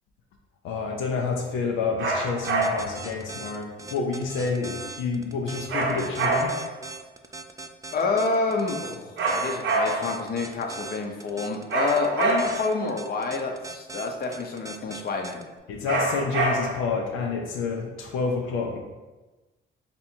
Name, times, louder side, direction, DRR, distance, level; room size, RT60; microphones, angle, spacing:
voice 1, 0.6-6.6 15.7-18.8, left 4 dB, 90° left, 1 dB, 0.6 m, -29 dB
sound 1, 2.0-3.0 5.7-6.8 9.2-10.2 11.7-12.8 15.9-16.9, right 2 dB, 65° right, 0.8 m, -26 dB
sound 2, 2.3-15.4, right 3 dB, 15° right, 0.4 m, -39 dB
voice 2, 7.9-15.4, left 3 dB, 50° left, 2 dB, 0.7 m, -28 dB
3.4 x 2.8 x 4.3 m, 1.2 s
cardioid pair, 90°, 20 cm